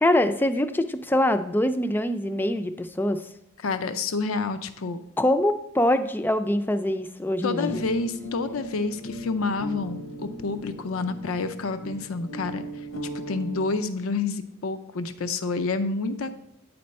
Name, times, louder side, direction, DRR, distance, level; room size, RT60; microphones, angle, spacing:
voice 1, 0.0-3.2 5.2-7.7, left 1 dB, 10° left, 10 dB, 0.3 m, -24 dB
voice 2, 3.6-5.0 7.4-12.9 13.3-16.3, left 3 dB, 90° left, 11 dB, 0.5 m, -29 dB
sound 1, 7.6-13.8, equal, 75° left, 0.9 m, -38 dB
9.3 x 4.3 x 5.3 m, 0.79 s
head